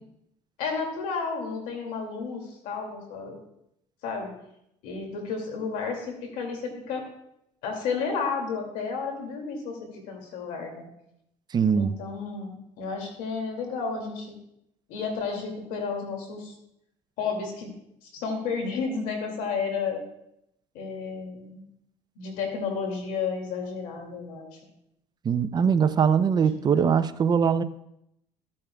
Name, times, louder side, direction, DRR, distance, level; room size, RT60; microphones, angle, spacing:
voice 1, 0.6-3.4 4.0-4.3 4.8-7.0 7.6-10.8 11.7-14.4 14.9-16.5 17.2-17.7 18.0-20.0 20.7-21.6 22.2-24.6 26.3-26.9, left 5 dB, 85° left, 2 dB, 2.3 m, -32 dB
voice 2, 11.5-11.9 25.2-27.6, right 7 dB, 35° right, 13 dB, 0.5 m, -22 dB
13.5 x 8.6 x 2.3 m, 0.78 s
cardioid pair, 115°, 13 cm